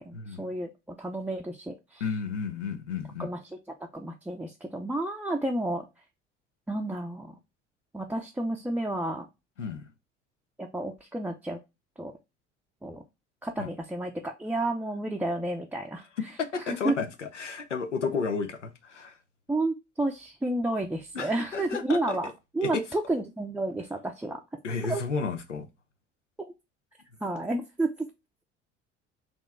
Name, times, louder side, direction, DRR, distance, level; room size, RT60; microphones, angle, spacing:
voice 1, 0.0-2.0 3.2-3.4 3.9-5.9 6.7-7.4 7.9-9.3 10.6-11.6 12.0-12.1 12.8-13.0 13.4-16.1 16.7-16.9 19.5-24.4 24.8-25.0 27.2-28.1, right 2 dB, 5° right, 0.5 m, -31 dB
voice 2, 2.0-3.3 9.6-9.8 13.6-13.7 16.4-19.2 21.1-22.2 22.6-22.8 24.6-25.7, left 5 dB, 90° left, 0.6 m, -32 dB
4.2 x 3.0 x 3.3 m
figure-of-eight pair, 60°, 35 cm